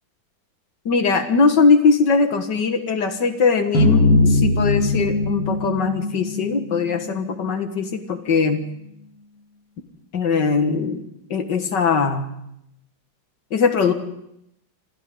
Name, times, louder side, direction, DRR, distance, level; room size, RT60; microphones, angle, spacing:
voice 1, 0.9-8.6 10.1-11.0 11.3-12.3 13.5-13.9, left 5 dB, 65° left, 7 dB, 2.3 m, -20 dB
sound 1, 3.7-8.1, left 2 dB, 85° left, 4.5 m, -21 dB
28.0 x 26.0 x 3.9 m, 0.77 s
omnidirectional pair, 2.1 m